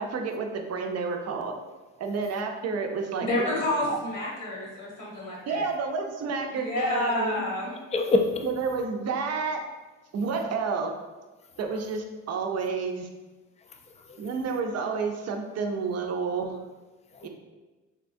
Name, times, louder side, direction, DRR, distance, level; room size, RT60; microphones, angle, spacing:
voice 1, 0.0-1.5 2.0-3.5 3.9-4.0 5.5-7.4 8.4-9.6 10.1-10.9 11.6-13.1 14.2-16.6 17.2-17.3, right 4 dB, 55° right, 3 dB, 0.5 m, -30 dB
voice 2, 3.2-5.7 6.5-7.8, left 1 dB, 85° left, -3 dB, 1.1 m, -29 dB
voice 3, 7.9-8.4 10.2-10.3 11.7-11.8 13.6-14.3 17.1-17.3, left 2 dB, 25° left, 5 dB, 0.3 m, -28 dB
3.4 x 2.8 x 2.5 m, 1.2 s
cardioid pair, 90°, 30 cm